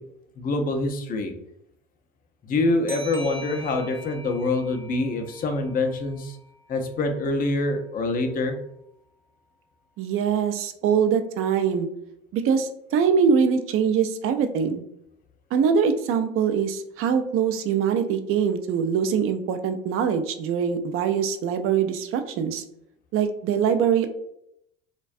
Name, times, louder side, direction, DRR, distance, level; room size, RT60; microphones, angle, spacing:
voice 1, 0.4-1.3 2.4-6.4 6.7-8.6, left 2 dB, 30° left, 5 dB, 0.4 m, -25 dB
sound 1, 2.9-6.2, equal, 10° right, 0.6 m, -42 dB
voice 2, 10.0-11.9 12.3-14.8 15.5-22.6 23.1-24.1, right 7 dB, 45° right, 8 dB, 0.4 m, -23 dB
2.3 x 2.2 x 2.5 m, 0.76 s
hypercardioid pair, 80°, 30 cm